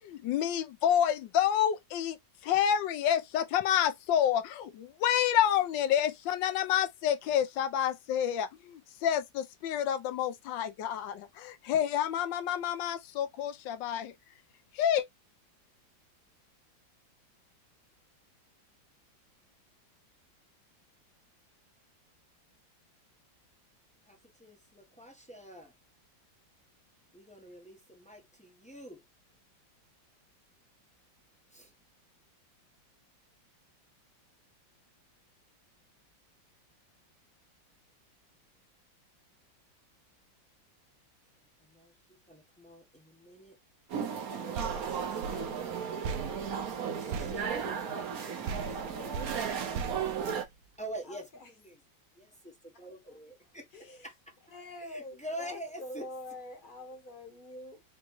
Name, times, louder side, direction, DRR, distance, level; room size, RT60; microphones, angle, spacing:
voice 1, 0.0-2.2 2.4-14.1 14.7-15.0, left 10 dB, 75° left, 1.3 m, -29 dB
voice 2, 24.1-25.7 27.1-29.0 31.5-31.7 41.4-43.6 44.3-45.8 46.6-49.3 50.8-51.8 52.2-54.3 54.8-56.1, right 1 dB, 5° left, 0.6 m, -46 dB
sound 1, 43.9-50.4, right 7 dB, 60° right, 1.2 m, -35 dB
sound 2, 44.5-48.2 48.5-50.9, right 5 dB, 80° right, 1.4 m, -40 dB
voice 3, 48.6-49.3 51.1-51.5 52.7-52.9 53.7-54.1 54.5-57.8, left 1 dB, 35° left, 1.0 m, -45 dB
5.3 x 2.3 x 3.0 m
omnidirectional pair, 2.1 m